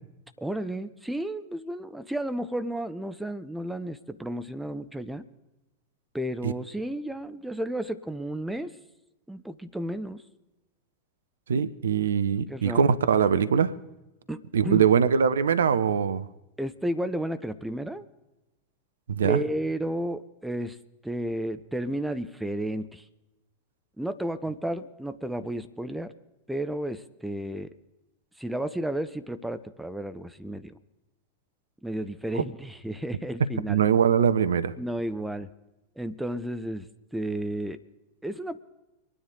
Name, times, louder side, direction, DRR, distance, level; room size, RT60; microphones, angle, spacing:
voice 1, 0.4-5.3 6.1-8.8 9.3-10.2 12.5-12.9 14.3-14.9 16.6-18.1 19.2-20.8 21.0-23.1 24.0-26.1 26.5-27.7 28.4-30.7 31.8-33.8 34.8-35.5 36.0-36.9 37.1-37.8 38.2-38.6, right 1 dB, 5° right, 10 dB, 0.7 m, -32 dB
voice 2, 11.5-13.7 14.5-16.3 19.1-19.4 32.3-32.4 33.7-34.7, right 7 dB, 65° right, 15 dB, 0.6 m, -22 dB
25.5 x 10.0 x 3.8 m, 0.99 s
figure-of-eight pair, 90°, 0 cm